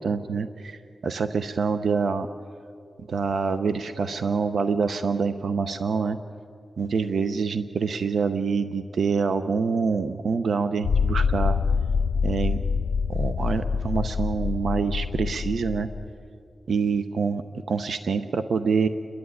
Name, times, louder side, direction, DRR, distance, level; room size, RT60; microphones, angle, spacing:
voice 1, 0.0-2.3 3.1-6.2 6.8-11.6 12.2-12.6 13.1-15.9 16.7-17.4 17.7-18.9, right 5 dB, 75° right, 10 dB, 0.7 m, -26 dB
sound 1, 10.8-16.1, left 5 dB, 75° left, 0.9 m, -25 dB
29.5 x 11.0 x 9.6 m, 2.5 s
wide cardioid pair, 110°, 0 cm